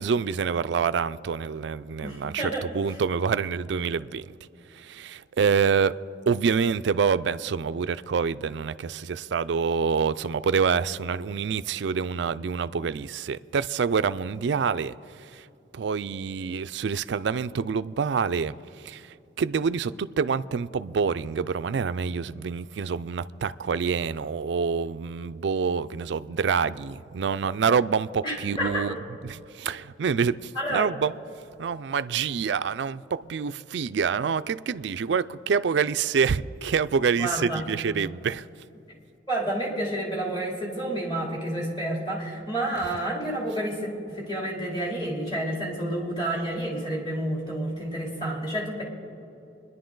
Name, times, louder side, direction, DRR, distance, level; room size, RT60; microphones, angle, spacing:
voice 1, 0.0-4.4 4.7-5.9 6.3-14.9 15.2-15.5 15.7-19.0 19.4-28.9 29.2-31.1 31.6-38.4, right 6 dB, 70° right, 0.4 m, -26 dB
voice 2, 2.0-3.0 28.2-28.8 30.5-30.9 37.2-37.7 39.3-48.8, right 1 dB, 25° left, 3.0 m, -30 dB
25.0 x 10.5 x 3.9 m
head